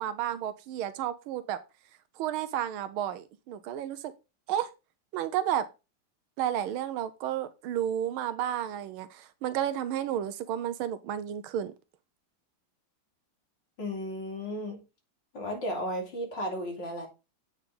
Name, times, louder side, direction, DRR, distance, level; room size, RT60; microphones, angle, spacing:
voice 1, 0.0-1.6 2.2-4.1 4.5-4.7 5.1-5.6 6.4-11.7, right 10 dB, 85° right, 1.5 m, -32 dB
voice 2, 13.8-14.8 15.3-17.1, equal, 55° left, 3.3 m, -34 dB
8.1 x 5.7 x 3.7 m
omnidirectional pair, 2.3 m